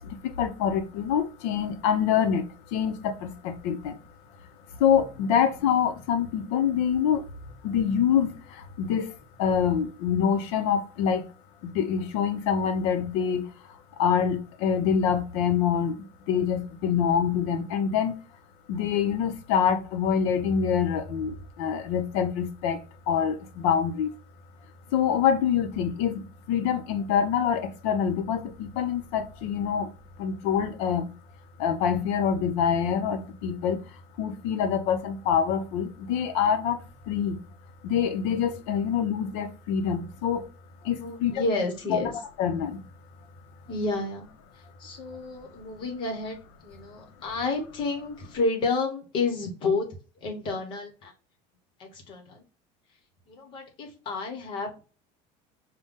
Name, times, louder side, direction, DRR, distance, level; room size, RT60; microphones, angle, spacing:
voice 1, 0.0-4.0 4.8-7.3 7.6-9.1 9.4-11.2 11.6-13.5 14.0-18.1 18.7-24.1 24.9-26.2 26.5-29.9 30.2-31.1 31.6-33.8 34.2-36.8 37.1-37.4 37.8-40.5 40.8-41.3 41.9-42.0 42.4-42.8, left 8 dB, 65° left, 0.7 m, -25 dB
voice 2, 40.9-42.1 43.7-44.3 44.5-49.9 50.2-51.1 51.8-52.4 53.3-54.8, left 3 dB, 30° left, 1.0 m, -30 dB
5.4 x 2.2 x 3.5 m
cardioid pair, 180°, 16 cm